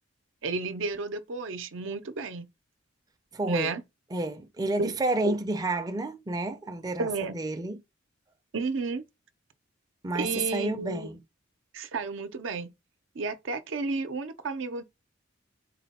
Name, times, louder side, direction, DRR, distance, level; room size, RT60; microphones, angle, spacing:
voice 1, 0.4-2.5 3.5-3.8 4.8-4.9 5.2-5.4 7.0-7.4 8.5-9.0 10.1-11.1 11.7-12.7 13.1-14.8, right 3 dB, 75° right, 0.6 m, -32 dB
voice 2, 3.3-3.7 4.1-7.1 7.3-7.8 10.0-11.2, right 2 dB, 20° right, 0.4 m, -30 dB
4.2 x 2.2 x 4.1 m
head